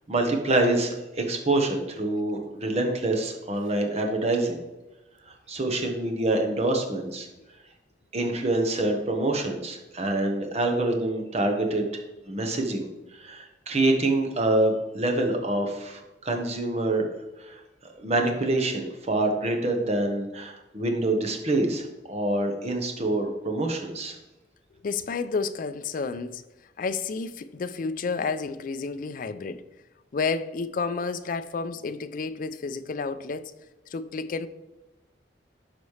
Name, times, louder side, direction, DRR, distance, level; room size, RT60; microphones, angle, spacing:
voice 1, 0.1-4.6 5.5-7.3 8.1-11.9 12.3-17.1 17.4-17.6 18.0-24.2, right 2 dB, 35° right, 1.0 m, -26 dB
voice 2, 24.8-26.4 26.8-29.6 30.1-33.5 33.9-34.5, left 4 dB, 50° left, 0.4 m, -30 dB
12.0 x 4.1 x 3.2 m
head